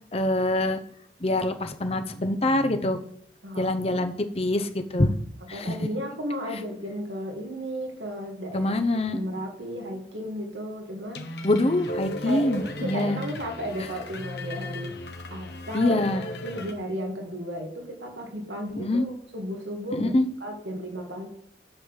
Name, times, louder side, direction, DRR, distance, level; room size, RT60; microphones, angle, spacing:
voice 1, 0.1-0.8 1.2-3.0 3.6-5.1 5.5-5.8 6.5-6.6 8.5-9.2 11.4-13.2 15.7-16.2 18.8-19.0 19.9-20.3, left 1 dB, 35° left, 8 dB, 0.8 m, -25 dB
voice 2, 5.5-8.7 9.1-11.3 12.3-16.0 16.4-20.1 20.4-21.3, equal, 90° right, 1 dB, 2.3 m, -34 dB
sound 1, 11.1-16.7, left 1 dB, 70° left, 1.3 m, -36 dB
11.5 x 4.0 x 7.4 m, 0.68 s
head